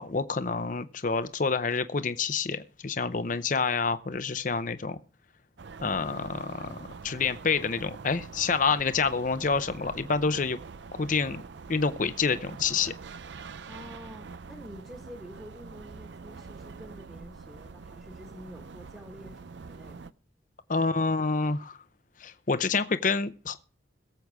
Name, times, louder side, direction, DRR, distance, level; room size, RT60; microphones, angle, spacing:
voice 1, 0.0-5.0 5.8-6.8 7.0-10.6 10.9-11.4 11.7-12.9 20.7-21.8 22.2-23.6, left 4 dB, 45° left, 0.7 m, -28 dB
sound 1, 5.6-20.1, right 4 dB, 65° right, 0.5 m, -45 dB
voice 2, 13.7-20.0, equal, 10° right, 1.5 m, -47 dB
22.0 x 7.9 x 3.5 m
head